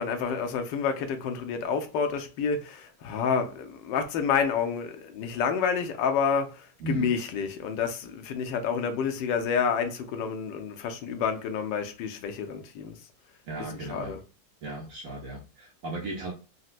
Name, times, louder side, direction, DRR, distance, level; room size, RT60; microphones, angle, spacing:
voice 1, 0.0-13.0 13.9-14.2, left 6 dB, 80° left, 1.2 m, -29 dB
voice 2, 13.5-14.2 14.6-16.3, right 2 dB, 65° right, 0.8 m, -36 dB
4.0 x 2.1 x 2.4 m
omnidirectional pair, 2.0 m